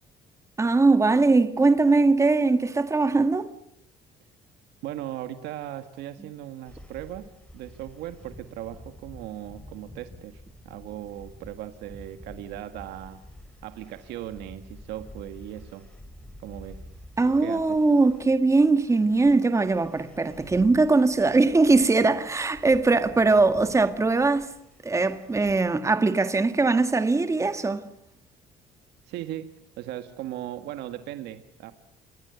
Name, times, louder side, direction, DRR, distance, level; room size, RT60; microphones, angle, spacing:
voice 1, 0.6-3.5 17.2-24.5 24.8-27.8, right 3 dB, 15° right, 1.7 m, -21 dB
voice 2, 4.8-13.2 13.6-15.9 16.4-16.8 17.4-17.8 29.0-29.5 29.8-31.7, right 12 dB, 90° right, 1.7 m, -38 dB
sound 1, 6.7-25.5, left 1 dB, 5° left, 7.1 m, -49 dB
28.0 x 23.5 x 8.1 m
cardioid pair, 110°, 17 cm